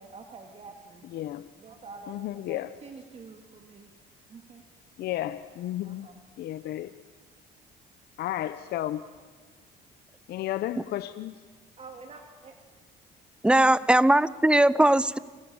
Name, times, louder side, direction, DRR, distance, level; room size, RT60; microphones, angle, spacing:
voice 1, 0.0-1.1 1.6-3.9 4.3-4.6 5.8-6.2 11.8-12.5, right 4 dB, 40° right, 4 dB, 2.6 m, -47 dB
voice 2, 1.1-1.5 2.1-2.8 5.0-6.1 6.4-6.9 8.2-9.0 10.3-11.3, left 13 dB, 70° left, 12 dB, 0.8 m, -32 dB
voice 3, 13.4-15.2, right 1 dB, 5° right, 18 dB, 0.7 m, -20 dB
29.5 x 25.0 x 7.2 m, 1.5 s
cardioid pair, 110°, 17 cm